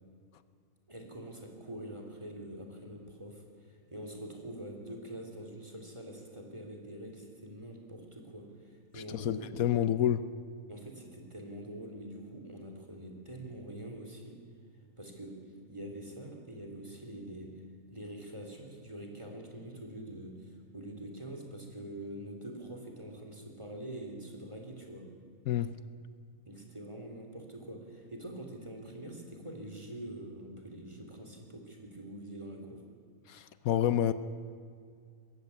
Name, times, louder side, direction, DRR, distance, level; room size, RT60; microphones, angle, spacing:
voice 1, 0.9-9.5 10.7-14.4 15.0-15.3 15.7-17.5 17.9-25.0 26.5-32.8, right 1 dB, 20° right, 1 dB, 3.3 m, -45 dB
voice 2, 8.9-10.3 25.5-25.7 33.3-34.1, left 10 dB, 75° left, 13 dB, 1.1 m, -29 dB
21.0 x 15.5 x 9.6 m, 2.2 s
omnidirectional pair, 1.5 m